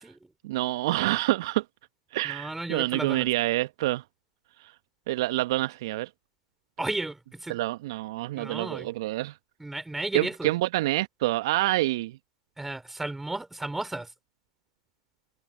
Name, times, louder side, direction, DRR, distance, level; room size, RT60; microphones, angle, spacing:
voice 1, 0.4-1.6 2.1-4.0 5.1-6.1 7.5-9.3 10.1-12.2, right 18 dB, 55° right, 1.3 m, -27 dB
voice 2, 2.2-3.3 6.8-7.6 8.4-8.9 9.6-10.5 12.6-14.1, right 2 dB, 5° right, 4.9 m, -34 dB
figure-of-eight pair, 100°, 3 cm